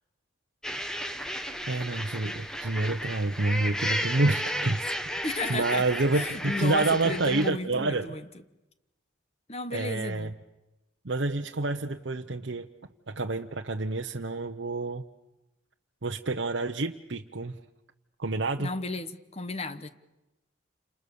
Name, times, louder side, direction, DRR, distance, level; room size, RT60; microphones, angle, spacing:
sound 1, 0.6-7.5, equal, 5° left, 1.2 m, -33 dB
voice 1, 1.7-4.9 5.5-8.1 9.7-10.3 11.0-12.7 13.1-15.0 16.0-17.6 18.2-18.7, right 2 dB, 65° right, 0.9 m, -28 dB
voice 2, 5.2-8.2 9.5-10.3 18.6-19.9, left 3 dB, 30° left, 1.2 m, -34 dB
29.0 x 27.5 x 7.0 m
head